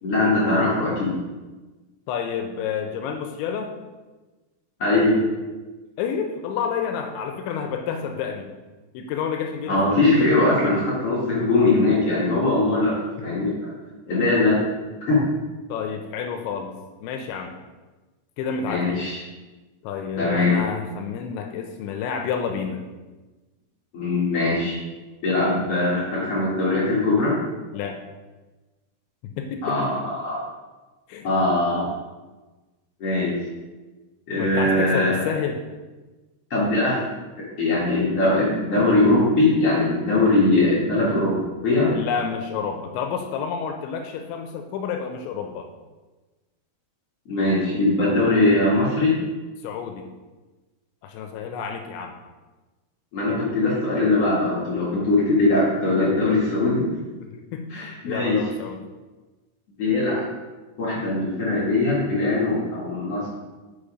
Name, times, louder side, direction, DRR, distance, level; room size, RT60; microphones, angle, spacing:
voice 1, 0.0-1.1 4.8-5.2 9.7-13.0 13.2-13.7 14.1-15.2 18.6-19.2 20.2-20.6 23.9-24.8 25.2-27.4 29.6-30.4 31.2-31.9 33.0-33.3 34.3-35.2 36.5-37.0 37.6-41.9 47.2-49.1 53.1-56.8 57.7-58.4 59.8-60.3 60.8-63.3, left 2 dB, 65° left, -7 dB, 1.5 m, -21 dB
voice 2, 2.1-3.7 6.0-8.5 8.9-10.3 10.6-10.8 12.4-12.5 13.2-13.6 15.7-16.7 17.0-17.5 18.4-19.1 19.8-22.8 27.7-28.0 29.2-29.7 31.1-31.3 34.4-35.6 41.9-45.7 49.6-50.1 51.0-52.2 55.3-55.4 57.0-58.8, left 6 dB, 80° left, 4 dB, 2.8 m, -30 dB
8.2 x 5.7 x 5.0 m, 1.2 s
omnidirectional pair, 5.6 m